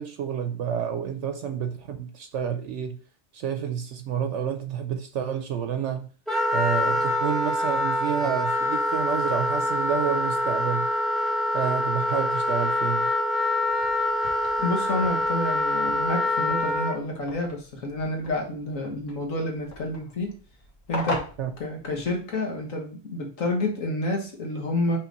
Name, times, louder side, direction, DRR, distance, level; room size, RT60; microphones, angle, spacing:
voice 1, 0.0-3.0 3.3-6.1 6.5-10.9 11.5-13.1 21.4-21.5, right 8 dB, 70° right, 0.9 m, -29 dB
Wind instrument woodwind instrument, 6.3-16.9, left 1 dB, ahead, 0.8 m, -25 dB
sound 1, 13.6-22.4, left 2 dB, 70° left, 1.9 m, -40 dB
voice 2, 14.6-20.3 20.9-21.3 21.6-25.0, left 2 dB, 90° left, 1.8 m, -29 dB
5.7 x 3.5 x 5.1 m
omnidirectional pair, 1.3 m